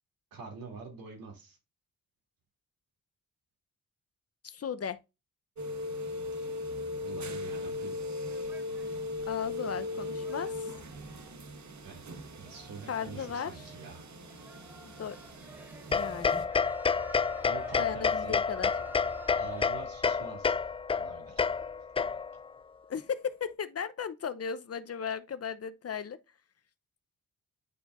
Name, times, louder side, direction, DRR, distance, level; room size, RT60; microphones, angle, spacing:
voice 1, 0.3-1.6 7.0-8.0 11.8-12.0 12.3-14.1 17.4-18.4 19.3-20.6 21.0-21.5, right 4 dB, 70° right, 2.8 m, -45 dB
voice 2, 4.4-5.0 9.3-10.5 12.9-13.5 14.8-15.2 15.9-16.5 17.8-18.7 22.9-26.2, left 7 dB, 45° left, 0.8 m, -36 dB
sound 1, 5.6-16.4, left 2 dB, 50° right, 1.2 m, -39 dB
sound 2, 8.3-19.7, right 1 dB, 5° right, 1.9 m, -53 dB
sound 3, 15.9-22.5, left 5 dB, 15° left, 0.3 m, -29 dB
9.9 x 4.5 x 2.5 m
supercardioid pair, 45°, 35 cm